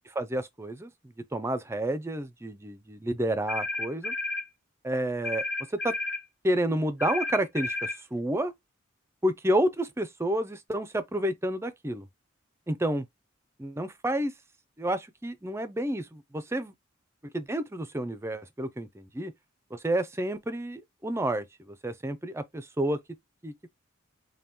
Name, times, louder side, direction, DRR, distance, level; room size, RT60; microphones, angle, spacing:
voice 1, 0.2-0.9 1.3-4.1 4.8-5.4 5.8-5.9 6.4-8.5 9.2-12.1 12.7-13.0 13.6-14.3 14.8-16.7 17.3-19.3 19.7-23.0 23.4-23.5, right 1 dB, 15° right, 0.4 m, -30 dB
sound 1, 3.5-4.5 5.2-6.2 7.0-8.0, left 2 dB, 55° left, 1.8 m, -32 dB
5.4 x 2.2 x 2.9 m
head